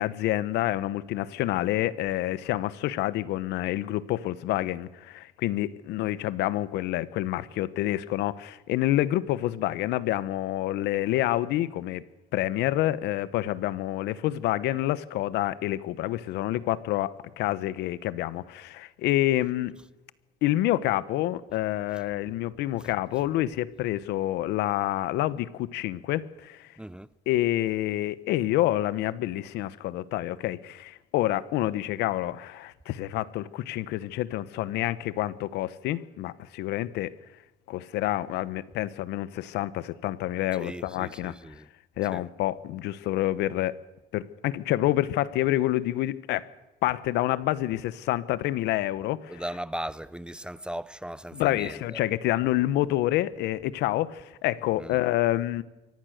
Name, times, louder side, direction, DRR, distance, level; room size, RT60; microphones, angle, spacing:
voice 1, 0.0-12.0 12.3-19.8 20.4-26.7 27.3-37.1 37.7-41.5 42.0-43.8 44.1-46.5 46.8-49.4 51.3-55.6, left 15 dB, 85° left, 1.1 m, -28 dB
voice 2, 26.8-27.1 40.6-41.7 42.1-42.2 49.3-52.0 54.8-55.0, right 1 dB, 5° right, 0.6 m, -38 dB
24.0 x 18.0 x 6.6 m
cardioid pair, 110°, 17 cm